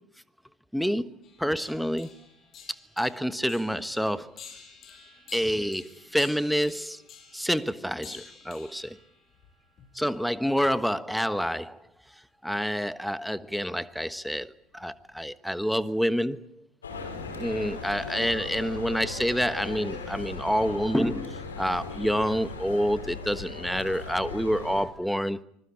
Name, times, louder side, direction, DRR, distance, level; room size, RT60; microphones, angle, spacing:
voice 1, 0.7-1.1 1.4-2.1 3.0-4.3 5.3-7.0 7.3-9.0 9.9-11.8 12.4-16.4 17.3-25.4, equal, ahead, 1.3 m, -28 dB
sound 1, 1.2-10.4 12.5-12.6 13.4-13.6 14.8-15.2 15.8-15.9, left 6 dB, 40° left, 7.7 m, -51 dB
sound 2, 16.8-24.9, left 4 dB, 80° left, 5.3 m, -38 dB
25.0 x 21.0 x 8.7 m
figure-of-eight pair, 75°, 0 cm